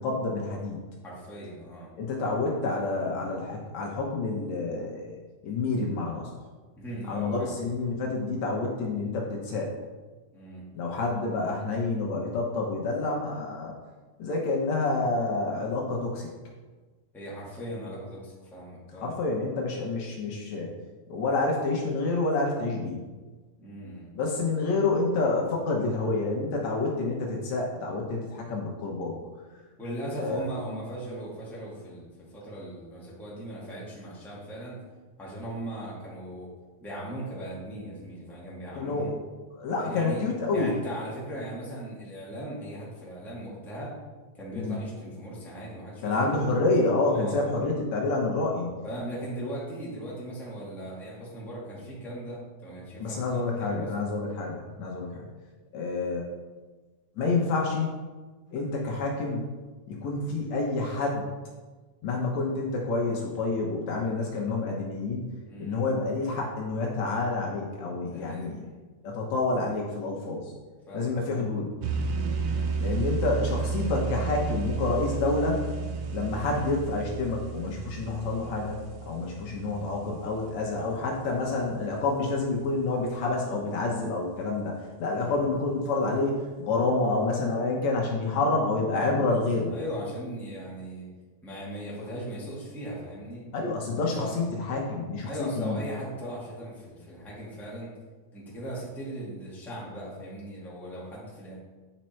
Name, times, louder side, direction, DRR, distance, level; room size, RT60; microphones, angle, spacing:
voice 1, 0.0-0.9 2.0-5.2 5.4-6.3 7.1-9.7 10.7-13.7 14.2-16.3 18.9-20.8 21.1-23.1 24.2-29.2 30.2-30.4 38.8-39.2 39.6-40.7 44.6-44.8 46.0-48.8 53.0-54.5 54.8-55.3 55.7-56.3 57.2-57.9 58.5-59.5 59.9-61.3 62.0-65.3 65.6-68.6 69.0-70.5 70.9-71.7 72.8-75.7 76.1-89.8 93.5-95.8, left 3 dB, 70° left, -2 dB, 2.2 m, -28 dB
voice 2, 1.0-1.9 6.8-7.9 10.3-10.6 17.1-19.2 23.6-24.1 29.8-34.8 35.2-36.5 36.8-39.1 39.7-40.2 40.5-44.0 44.3-46.6 47.1-47.7 48.8-53.9 65.4-65.8 68.0-68.5 70.9-71.4 72.4-72.8 76.4-76.8 79.5-79.7 85.1-85.4 89.7-91.0 91.4-93.4 94.1-94.3 95.2-97.9 98.3-101.5, right 1 dB, ahead, -7 dB, 1.7 m, -38 dB
sound 1, 71.8-81.3, right 4 dB, 70° right, 1.7 m, -32 dB
8.8 x 5.3 x 4.4 m, 1.3 s
omnidirectional pair, 3.5 m